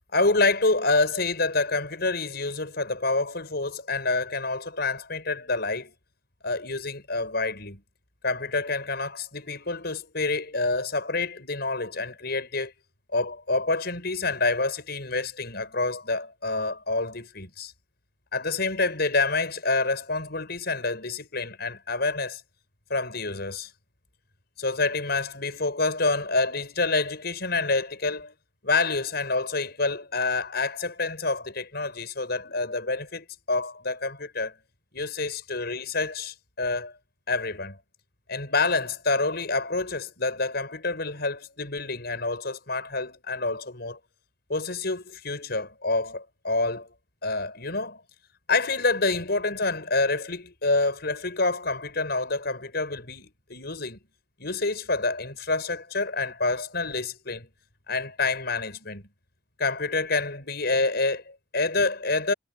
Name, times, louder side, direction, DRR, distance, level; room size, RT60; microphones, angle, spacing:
voice 1, 0.1-5.9 6.4-7.8 8.2-12.7 13.1-17.7 18.3-22.4 22.9-23.7 24.6-28.3 28.6-34.5 34.9-36.9 37.3-37.8 38.3-44.0 44.5-46.9 47.2-48.0 48.5-54.0 54.4-57.5 57.9-59.1 59.6-62.3, left 3 dB, 60° left, 6.4 m, -27 dB
head